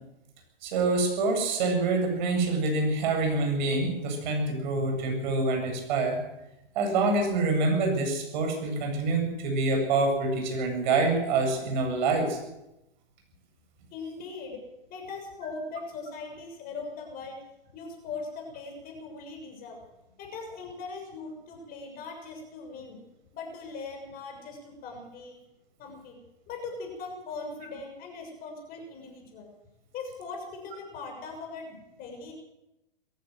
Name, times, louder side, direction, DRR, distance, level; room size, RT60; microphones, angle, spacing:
voice 1, 0.6-6.2 6.7-12.4, right 3 dB, 50° right, 3 dB, 8.0 m, -26 dB
voice 2, 13.9-14.6 14.9-17.4 17.7-19.8 20.2-23.0 23.3-25.4 25.8-26.2 26.5-29.5 29.9-32.3, left 4 dB, 30° left, 2 dB, 6.8 m, -40 dB
21.5 x 15.5 x 7.9 m, 0.92 s
hypercardioid pair, 120°, 29 cm